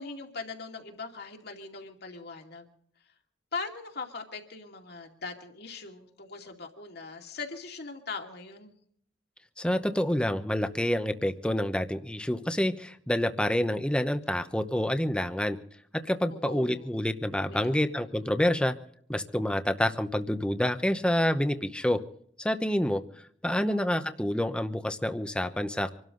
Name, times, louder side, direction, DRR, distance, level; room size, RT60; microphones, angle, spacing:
voice 1, 0.0-2.7 3.5-8.7 16.3-16.9 17.4-17.8 23.5-24.1, left 4 dB, 60° left, 3 dB, 2.5 m, -41 dB
voice 2, 9.6-15.6 15.9-18.7 19.1-22.0 22.4-23.0 23.4-25.9, left 1 dB, 5° left, 9 dB, 0.9 m, -28 dB
26.0 x 12.5 x 3.9 m, 0.64 s
head